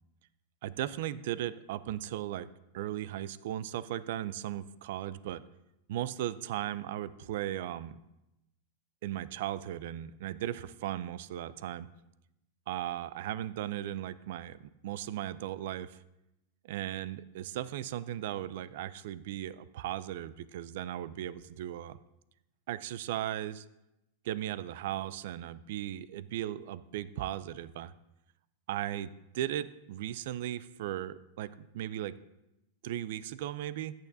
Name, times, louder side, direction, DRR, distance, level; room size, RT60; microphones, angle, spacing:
voice 1, 0.6-2.5 2.7-5.4 5.9-8.0 9.0-11.9 12.7-14.6 14.8-16.0 16.6-22.0 22.7-23.6 24.2-27.9 28.7-32.2 32.8-33.9, right 12 dB, 65° right, 16 dB, 0.4 m, -37 dB
14.5 x 9.0 x 2.7 m, 0.90 s
supercardioid pair, 145°, 0 cm